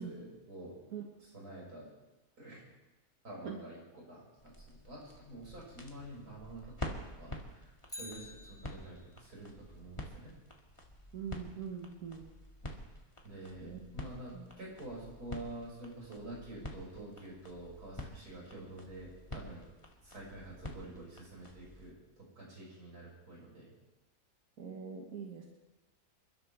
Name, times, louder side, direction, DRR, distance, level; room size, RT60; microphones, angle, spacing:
voice 1, 0.0-0.8 1.2-1.9 2.4-2.6 3.2-10.3 13.2-19.7 20.0-22.0 22.4-23.7, right 1 dB, 90° right, -5 dB, 6.6 m, -48 dB
sound 1, 4.4-21.9, left 1 dB, 20° left, 1.9 m, -48 dB
Bicycle, 7.8-9.2 17.6-17.7, left 1 dB, 5° left, 0.6 m, -49 dB
voice 2, 11.1-12.3 13.6-13.8 14.3-14.5 24.6-25.4, right 7 dB, 70° right, 0 dB, 1.9 m, -42 dB
28.5 x 12.5 x 3.4 m, 1.1 s
omnidirectional pair, 1.6 m